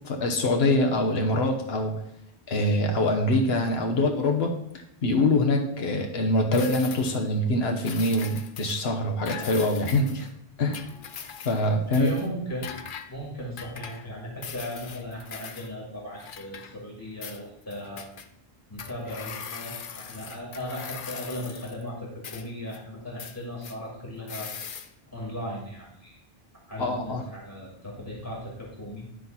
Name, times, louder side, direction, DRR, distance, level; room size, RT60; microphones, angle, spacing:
voice 1, 0.0-2.0 2.5-4.6 5.0-10.3 10.6-10.8 11.4-12.1 26.8-27.2, left 1 dB, 80° left, 3 dB, 1.2 m, -24 dB
sound 1, 6.5-7.3 7.8-8.9 9.3-10.3 10.7-11.7 11.9-12.3 12.6-13.1 13.6-14.1 14.4-15.7 16.2-17.0 17.2-18.3 18.8-21.8 22.2-22.8 23.2-23.8 24.3-24.9, left 7 dB, 60° left, 0.8 m, -40 dB
voice 2, 11.9-12.7 13.1-18.1 18.7-24.5 25.1-26.1 26.7-29.0, equal, 20° left, -4 dB, 2.6 m, -37 dB
11.0 x 4.1 x 5.9 m, 0.77 s
omnidirectional pair, 1.0 m